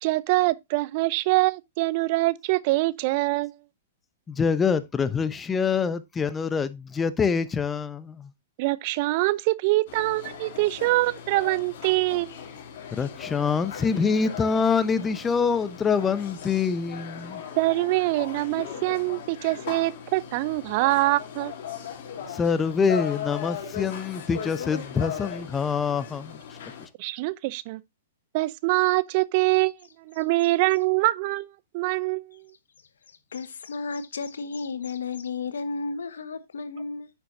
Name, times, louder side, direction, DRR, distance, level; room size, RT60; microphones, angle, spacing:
voice 1, 0.0-3.6 8.6-12.4 17.6-21.5 27.0-27.8 28.3-31.5 31.7-32.5, right 20 dB, 50° right, 0.6 m, -24 dB
voice 2, 4.3-8.3 12.9-17.4 22.3-26.4 26.8-26.9, left 5 dB, 15° left, 0.9 m, -25 dB
sound 1, 9.9-26.9, left 8 dB, 60° left, 2.9 m, -38 dB
voice 3, 33.3-37.1, left 4 dB, 85° left, 1.3 m, -33 dB
10.0 x 7.2 x 2.6 m
hypercardioid pair, 125°, 0 cm